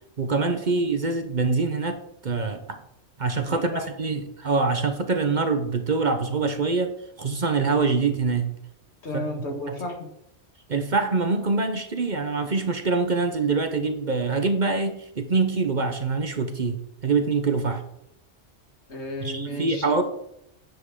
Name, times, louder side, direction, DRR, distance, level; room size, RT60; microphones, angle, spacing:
voice 1, 0.2-2.0 2.2-2.8 3.2-6.9 7.2-8.5 9.1-9.3 9.7-9.8 10.7-16.8 17.0-17.8 19.2-20.0, right 4 dB, 45° right, 7 dB, 1.0 m, -24 dB
voice 2, 3.5-3.9 9.0-10.1 18.9-20.0, left 1 dB, 80° left, 2 dB, 2.0 m, -33 dB
9.9 x 7.3 x 3.7 m, 0.77 s
omnidirectional pair, 1.1 m